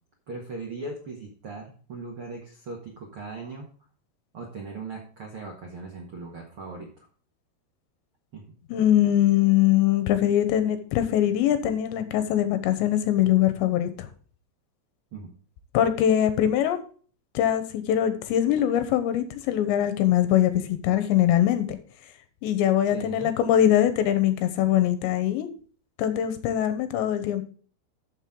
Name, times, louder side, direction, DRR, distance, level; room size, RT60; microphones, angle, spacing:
voice 1, 0.3-3.7 4.3-7.1 8.3-8.5 15.1-15.3 22.9-23.3, right 3 dB, 70° right, 0 dB, 1.3 m, -39 dB
voice 2, 8.7-14.1 15.7-16.8 17.3-21.8 22.4-25.5 26.0-27.4, left 11 dB, 75° left, 10 dB, 3.1 m, -22 dB
13.0 x 6.4 x 3.8 m, 0.43 s
omnidirectional pair, 5.4 m